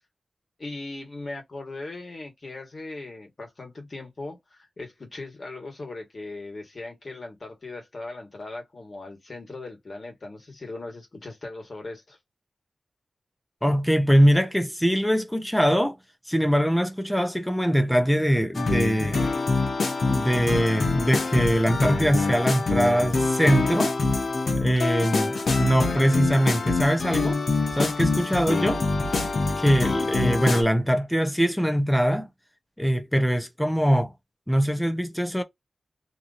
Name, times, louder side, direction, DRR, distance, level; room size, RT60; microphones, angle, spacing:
voice 1, 0.6-12.2, left 2 dB, 55° left, 1.5 m, -39 dB
voice 2, 13.6-16.0 16.3-19.2 20.1-23.9 24.6-27.4 27.7-28.8 29.6-32.3 32.8-34.1 34.5-35.4, equal, 5° left, 0.7 m, -22 dB
sound 1, 18.5-30.6, left 3 dB, 75° left, 0.9 m, -25 dB
3.0 x 2.6 x 2.5 m
wide cardioid pair, 85°, 0 cm